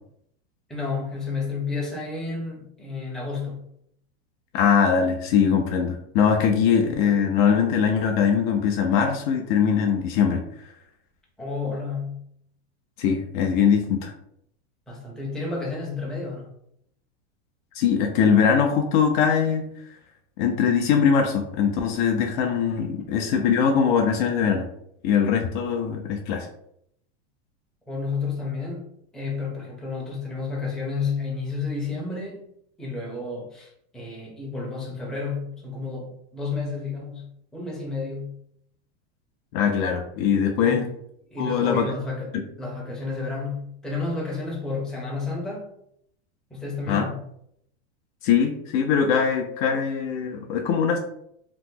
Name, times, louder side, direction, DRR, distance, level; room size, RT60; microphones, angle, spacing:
voice 1, 0.7-3.7 11.4-12.2 14.9-16.5 27.9-28.9 29.1-32.4 32.8-38.4 40.7-40.9 41.3-42.3 42.6-45.7 46.5-47.2, left 4 dB, ahead, -4 dB, 0.6 m, -31 dB
voice 2, 4.5-10.4 13.0-14.1 17.7-19.7 20.4-24.7 25.0-26.5 39.5-40.9 41.4-41.9 46.9-47.0 48.2-51.0, left 7 dB, 50° left, 4 dB, 0.4 m, -21 dB
2.9 x 2.0 x 3.5 m, 0.72 s
supercardioid pair, 145°, 33 cm